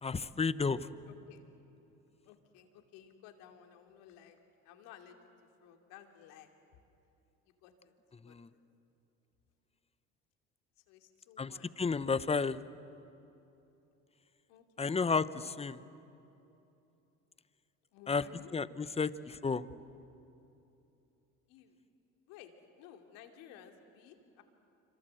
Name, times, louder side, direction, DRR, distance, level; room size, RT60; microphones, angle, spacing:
voice 1, 0.0-0.9 8.3-8.5 11.4-12.6 14.8-15.8 18.1-18.3 18.5-19.6, left 4 dB, 20° left, 15 dB, 0.9 m, -32 dB
voice 2, 1.0-1.4 2.2-4.4 4.6-5.2 5.6-6.5 7.6-7.9 8.3-8.4 10.9-11.7 14.5-14.9 17.9-18.5 19.0-19.4 21.5-21.7 22.3-24.4, left 10 dB, 80° left, 4 dB, 2.8 m, -56 dB
27.0 x 26.0 x 7.9 m, 2.8 s
supercardioid pair, 80°, 33 cm